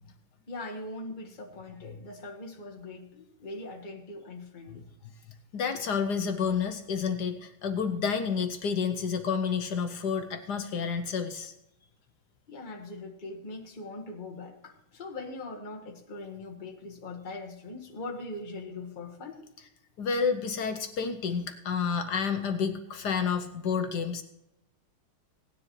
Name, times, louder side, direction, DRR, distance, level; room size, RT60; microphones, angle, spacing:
voice 1, 0.5-4.9 12.5-19.4, left 2 dB, 25° left, -1 dB, 1.5 m, -41 dB
voice 2, 5.5-11.5 20.0-24.2, left 6 dB, 65° left, 7 dB, 1.1 m, -30 dB
18.0 x 9.9 x 3.2 m, 0.84 s
omnidirectional pair, 2.3 m